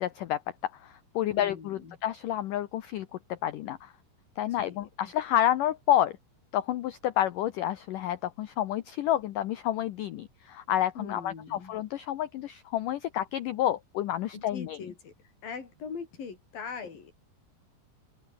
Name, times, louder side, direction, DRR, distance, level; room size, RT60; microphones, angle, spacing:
voice 1, 0.0-3.9 4.4-6.2 6.5-14.8, left 12 dB, 85° left, 1.9 m, -29 dB
voice 2, 1.3-2.0 4.5-5.1 11.0-11.7 14.3-15.1 15.4-17.1, left 5 dB, 50° left, 6.6 m, -41 dB
open air
omnidirectional pair, 5.1 m